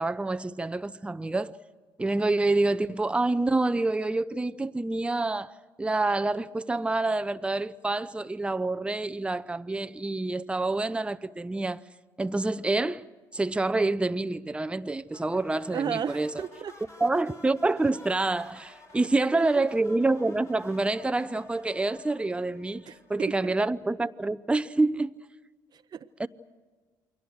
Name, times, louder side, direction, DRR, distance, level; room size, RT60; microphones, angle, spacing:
voice 1, 0.0-1.6 2.0-5.5 5.8-11.8 12.2-13.0 13.3-16.4 17.0-25.2 26.2-26.3, right 2 dB, 10° right, 0.6 m, -27 dB
sound 1, 15.1-23.6, left 1 dB, 30° left, 4.2 m, -52 dB
voice 2, 15.7-16.7 19.4-19.7 22.9-23.5 25.7-26.1, right 7 dB, 40° right, 0.8 m, -34 dB
28.5 x 22.5 x 6.4 m
hypercardioid pair, 55°, 10 cm